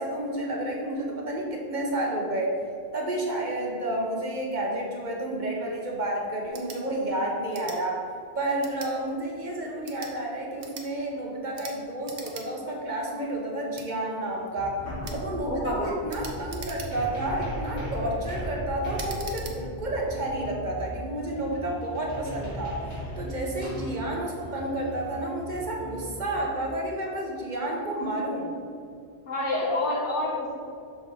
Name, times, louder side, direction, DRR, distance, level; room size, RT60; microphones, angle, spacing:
voice 1, 0.0-2.5 2.9-8.0 8.3-14.8 15.1-22.8 23.2-28.5, right 1 dB, 45° right, -1 dB, 1.1 m, -30 dB
sound 1, 6.5-6.8 7.5-7.8 8.6-8.9 9.7-10.1 10.6-10.9 11.5-11.8 12.0-12.5 12.8-12.9 13.7-13.9 15.0-15.2 16.1-17.2 17.7-18.0 18.9-19.6, right 5 dB, 80° right, 1.1 m, -42 dB
sound 2, 14.2-14.3 14.6-26.4, equal, 75° left, 1.9 m, -37 dB
voice 2, 15.4-15.9 29.3-30.5, left 2 dB, 90° left, -4 dB, 1.8 m, -28 dB
6.4 x 5.1 x 4.0 m, 2.3 s
omnidirectional pair, 1.1 m